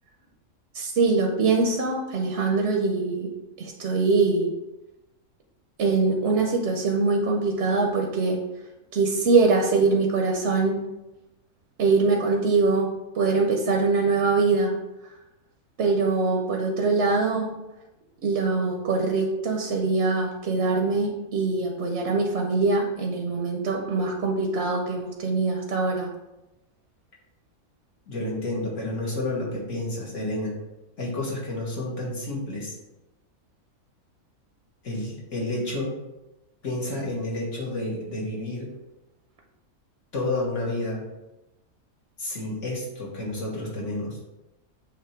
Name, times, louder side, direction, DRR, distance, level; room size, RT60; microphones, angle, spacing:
voice 1, 0.7-3.3 3.6-4.5 5.8-8.4 8.9-10.9 11.8-14.7 15.8-17.6 18.2-26.1, right 3 dB, 55° right, 1 dB, 0.9 m, -23 dB
voice 2, 28.1-30.5 31.0-32.7 34.8-35.9 36.6-38.7 40.1-41.0 42.2-44.2, left 2 dB, 55° left, -3 dB, 1.8 m, -30 dB
7.1 x 3.0 x 4.4 m, 0.96 s
omnidirectional pair, 1.5 m